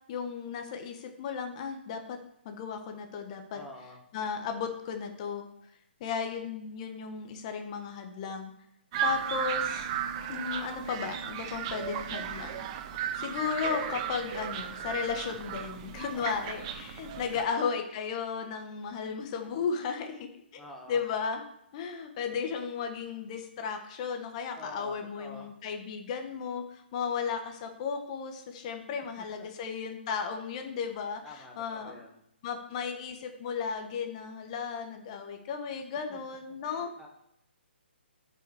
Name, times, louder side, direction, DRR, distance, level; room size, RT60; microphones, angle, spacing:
voice 1, 0.1-2.2 2.4-3.6 4.1-5.5 6.0-8.5 9.0-9.9 10.3-12.7 13.2-20.6 20.9-21.4 21.7-32.0 32.4-36.9, left 6 dB, 35° left, 5 dB, 1.3 m, -35 dB
voice 2, 3.5-4.0 16.1-16.5 17.3-17.7 20.6-21.0 24.5-25.5 29.2-29.5 31.2-32.2 36.1-36.2 36.6-37.1, left 1 dB, ahead, -3 dB, 1.2 m, -48 dB
sound 1, 8.9-17.4, right 9 dB, 30° right, 0.8 m, -35 dB
8.9 x 5.6 x 4.9 m, 0.77 s
hypercardioid pair, 145°, 6 cm